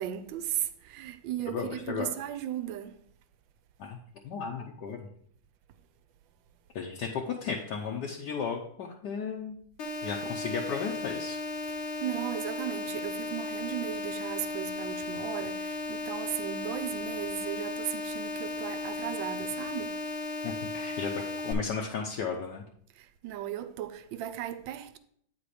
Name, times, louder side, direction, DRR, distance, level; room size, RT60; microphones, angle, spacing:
voice 1, 0.0-3.0 10.2-10.3 11.7-20.1 22.9-25.0, right 11 dB, 80° right, 1.3 m, -36 dB
voice 2, 1.5-2.1 3.8-4.0 4.2-5.1 6.7-9.6 10.0-11.4 20.4-22.6, left 6 dB, 65° left, 1.3 m, -34 dB
sound 1, 9.8-21.5, left 3 dB, 85° left, 2.1 m, -35 dB
8.8 x 4.3 x 4.8 m
omnidirectional pair, 2.1 m